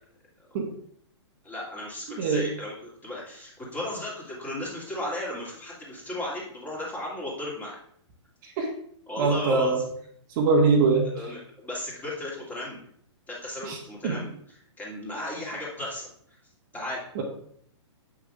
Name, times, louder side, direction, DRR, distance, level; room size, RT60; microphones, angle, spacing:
voice 1, 1.4-7.8 9.1-9.8 11.1-12.8 13.3-16.1 16.7-17.0, left 1 dB, 10° left, -5 dB, 2.2 m, -35 dB
voice 2, 9.2-9.8 10.4-11.1 13.7-13.8 14.0-14.2 17.1-17.2, right 4 dB, 45° right, 0 dB, 1.3 m, -22 dB
7.4 x 6.3 x 2.4 m, 0.65 s
hypercardioid pair, 135°, 15 cm